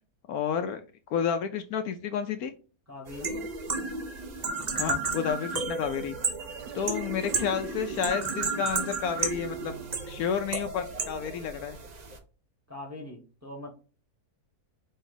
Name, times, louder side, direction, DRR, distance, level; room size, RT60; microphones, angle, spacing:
voice 1, 0.3-0.8 1.1-2.5 4.8-6.2 6.7-9.8 10.1-11.8, left 7 dB, 75° left, 8 dB, 1.0 m, -30 dB
voice 2, 2.9-3.4 12.7-13.7, left 2 dB, 10° right, 0 dB, 1.0 m, -41 dB
sound 1, 3.1-12.2, right 4 dB, 45° right, 0.5 m, -33 dB
sound 2, 5.9-11.2, right 6 dB, 70° right, 1.2 m, -44 dB
5.3 x 2.6 x 3.8 m, 0.35 s
omnidirectional pair, 1.7 m